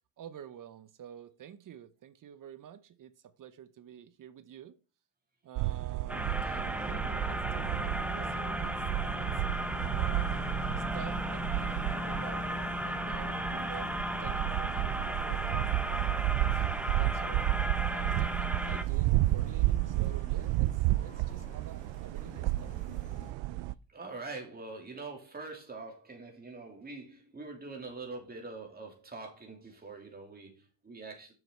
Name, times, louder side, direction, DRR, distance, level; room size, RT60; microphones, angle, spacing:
voice 1, 0.2-4.8 5.4-8.8 9.1-9.4 9.9-13.9 14.2-16.6 17.0-17.4 17.9-22.7, right 9 dB, 45° right, 0.8 m, -49 dB
sound 1, 5.6-23.7, right 17 dB, 90° right, 0.5 m, -32 dB
sound 2, 6.1-18.8, equal, 5° right, 0.7 m, -35 dB
sound 3, 9.2-23.3, left 2 dB, 15° left, 1.2 m, -53 dB
voice 2, 23.9-31.3, right 3 dB, 20° right, 2.7 m, -44 dB
7.2 x 6.5 x 4.4 m
cardioid pair, 120°, 44 cm